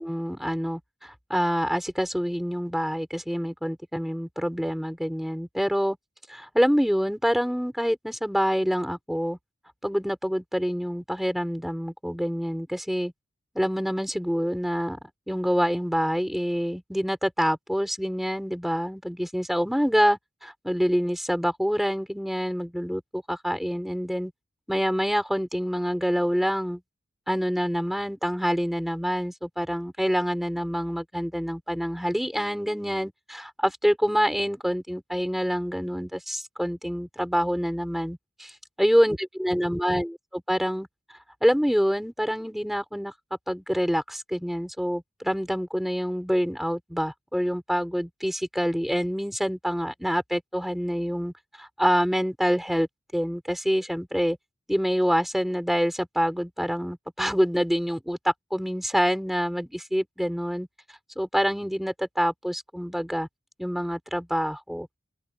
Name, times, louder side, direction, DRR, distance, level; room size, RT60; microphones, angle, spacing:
voice 1, 0.0-6.0 6.3-9.4 9.8-13.1 13.5-15.0 15.3-24.3 24.7-26.8 27.3-38.2 38.8-40.9 41.4-43.1 43.5-52.9 53.1-54.4 54.7-60.7 61.2-63.3 63.6-64.9, equal, ahead, 4.1 m, -26 dB
open air
head